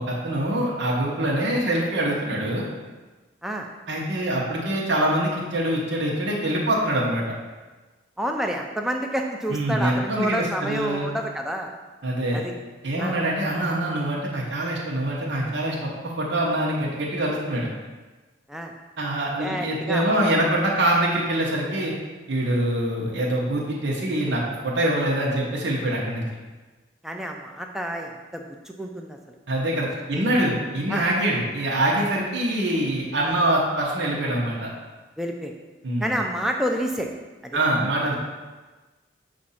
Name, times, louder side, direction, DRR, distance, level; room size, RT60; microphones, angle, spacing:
voice 1, 0.0-2.6 3.9-7.2 9.5-11.1 12.0-12.4 12.8-17.7 19.0-21.9 22.3-26.2 29.5-34.7 35.8-36.1 37.5-38.2, right 1 dB, 75° right, -4 dB, 1.0 m, -24 dB
voice 2, 8.2-11.7 12.3-12.6 13.0-13.2 18.5-18.7 19.4-20.3 27.0-29.4 30.1-30.3 30.9-31.0 35.2-35.5 36.0-37.1 37.4-37.6, equal, ahead, 2 dB, 0.4 m, -29 dB
7.2 x 2.6 x 5.6 m, 1.3 s
head